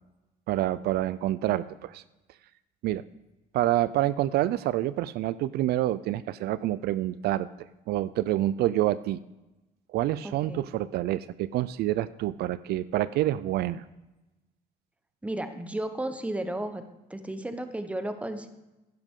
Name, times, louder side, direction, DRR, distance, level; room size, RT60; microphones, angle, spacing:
voice 1, 0.5-2.0 2.8-3.0 3.5-9.2 9.9-13.8, right 14 dB, 70° right, 17 dB, 0.4 m, -27 dB
voice 2, 10.2-10.6 15.2-16.8 17.1-18.5, right 1 dB, 10° right, 8 dB, 1.0 m, -33 dB
11.5 x 10.0 x 3.7 m, 1.0 s
cardioid pair, 110°, 17 cm